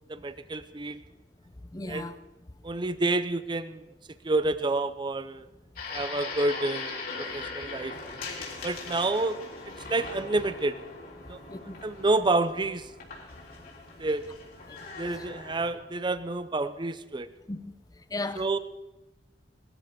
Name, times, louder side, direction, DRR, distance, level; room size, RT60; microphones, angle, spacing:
voice 1, 0.1-1.0 1.9-2.1 2.6-3.8 4.2-5.5 5.9-7.9 8.6-9.4 9.7-10.8 11.3-12.9 14.0-14.2 15.0-17.3 18.4-18.6, right 2 dB, 25° right, 0.6 m, -29 dB
voice 2, 1.7-2.2 11.5-11.8 14.7-14.8 15.2-15.3 17.5-17.7 18.1-18.6, left 2 dB, 20° left, 0.7 m, -36 dB
sound 1, 5.8-15.7, left 4 dB, 55° left, 3.4 m, -40 dB
19.0 x 13.0 x 5.1 m
head